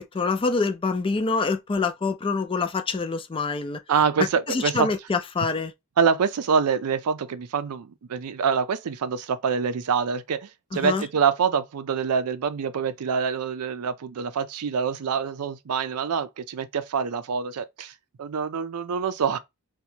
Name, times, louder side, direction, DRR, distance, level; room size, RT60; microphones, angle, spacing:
voice 1, 0.0-3.8 4.5-5.7 10.7-11.0, left 4 dB, 25° left, 0.4 m, -26 dB
voice 2, 3.9-4.9 6.0-17.9 18.2-19.4, right 6 dB, 90° right, 0.4 m, -25 dB
2.8 x 2.3 x 4.2 m
head